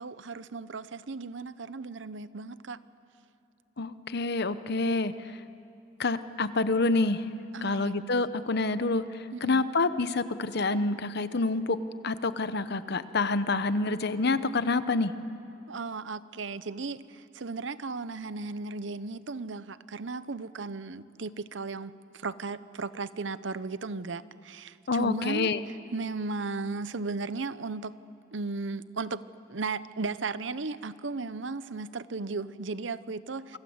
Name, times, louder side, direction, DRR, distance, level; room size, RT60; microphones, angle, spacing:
voice 1, 0.0-2.8 7.5-8.0 9.3-9.6 15.7-28.0 28.3-29.2 29.5-33.6, right 3 dB, 65° right, 15 dB, 0.8 m, -36 dB
voice 2, 3.8-5.1 6.0-7.2 7.6-9.0 9.4-11.8 12.0-15.1 24.9-25.6, left 3 dB, 55° left, 13 dB, 0.9 m, -27 dB
28.0 x 25.5 x 8.0 m, 2.7 s
head